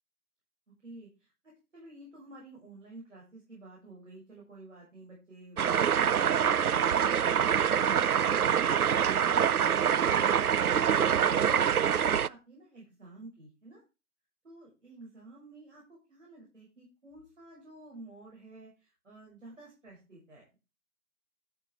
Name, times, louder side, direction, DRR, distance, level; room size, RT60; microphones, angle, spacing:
voice 1, 0.7-13.8 14.4-20.6, right 2 dB, 50° right, -5 dB, 6.9 m, -52 dB
sound 1, 5.6-12.3, right 8 dB, 70° right, 0.5 m, -25 dB
14.5 x 5.7 x 4.9 m, 0.29 s
figure-of-eight pair, 155°, 46 cm